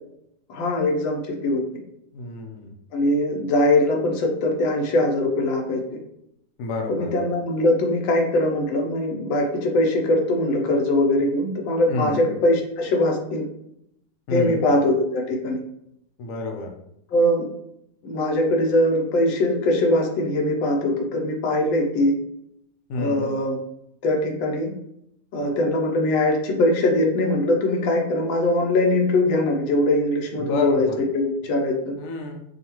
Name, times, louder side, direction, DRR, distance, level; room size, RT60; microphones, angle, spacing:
voice 1, 0.5-1.6 2.9-5.8 6.9-13.4 14.3-15.6 17.1-17.5 18.0-22.1 23.0-23.6 24.0-24.7 25.3-31.9, left 1 dB, 85° left, 1 dB, 1.5 m, -21 dB
voice 2, 2.1-2.8 6.6-7.1 11.9-12.3 14.3-14.6 16.2-16.7 22.9-23.3 30.4-31.0 32.0-32.4, left 3 dB, 65° left, 2 dB, 0.9 m, -29 dB
5.5 x 2.4 x 2.9 m, 0.77 s
omnidirectional pair, 2.0 m